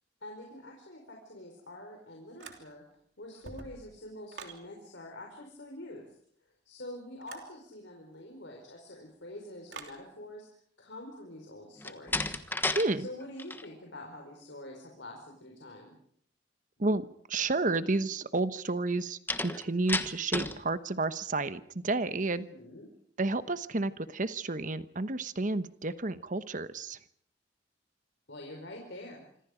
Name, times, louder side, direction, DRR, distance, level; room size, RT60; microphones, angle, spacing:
voice 1, 0.2-2.8 3.2-6.2 6.6-10.5 10.8-12.2 13.0-15.9 22.3-22.9 28.3-29.3, left 1 dB, 80° left, 1 dB, 4.8 m, -46 dB
sound 1, 2.4-3.0 3.3-4.6 7.2-7.5 9.7-10.0, right 4 dB, 65° right, 3.2 m, -47 dB
Slam, 11.8-12.9 13.2-13.7 19.3-20.6, left 2 dB, 10° left, 1.3 m, -32 dB
voice 2, 12.7-13.1 16.8-22.5 23.2-27.0, right 2 dB, 45° right, 12 dB, 1.1 m, -31 dB
26.5 x 25.5 x 5.1 m, 0.65 s
head